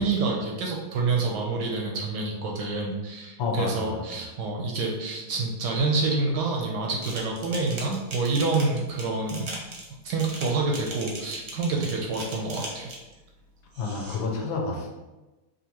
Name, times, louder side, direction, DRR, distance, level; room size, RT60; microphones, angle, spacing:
voice 1, 0.0-9.5 10.0-12.9, right 3 dB, 70° right, 0 dB, 1.1 m, -27 dB
voice 2, 3.4-4.0 13.8-14.9, left 4 dB, 75° left, 0 dB, 1.5 m, -29 dB
sound 1, 7.0-13.1 13.7-14.2, right 2 dB, 55° right, 0.7 m, -39 dB
5.1 x 2.6 x 2.9 m, 1.1 s
omnidirectional pair, 2.3 m